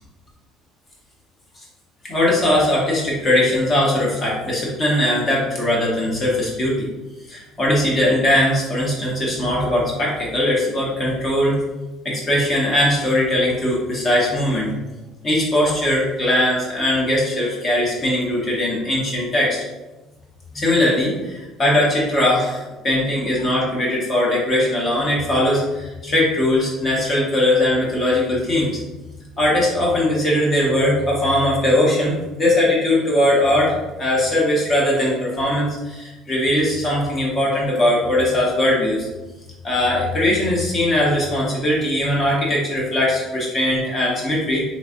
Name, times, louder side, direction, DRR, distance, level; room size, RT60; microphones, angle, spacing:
voice 1, 2.1-6.9 7.3-11.6 12.0-14.7 15.2-19.6 20.5-28.7 29.4-39.1 39.6-44.6, left 1 dB, 40° left, -4 dB, 1.4 m, -20 dB
3.1 x 3.1 x 2.6 m, 1.1 s
supercardioid pair, 75°, 0 cm